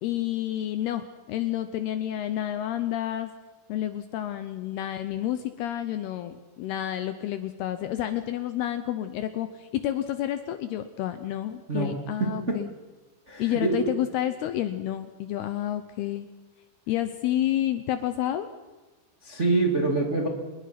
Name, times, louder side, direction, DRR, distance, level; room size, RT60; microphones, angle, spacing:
voice 1, 0.0-3.3 3.7-12.7 13.4-16.3 16.9-18.5, left 12 dB, 75° left, 10 dB, 2.5 m, -30 dB
voice 2, 12.2-12.6 13.3-13.9 19.2-20.3, right 3 dB, 25° right, 2 dB, 1.7 m, -25 dB
27.5 x 21.5 x 6.0 m, 1.2 s
omnidirectional pair, 5.4 m